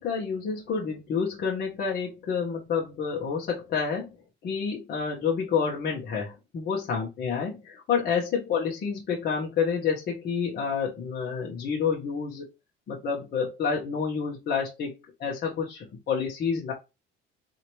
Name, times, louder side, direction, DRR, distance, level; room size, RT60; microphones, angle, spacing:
voice 1, 0.0-4.1 4.4-12.5 12.9-16.7, left 6 dB, 50° left, -2 dB, 1.2 m, -29 dB
4.3 x 2.8 x 3.0 m, 0.25 s
cardioid pair, 130°, 21 cm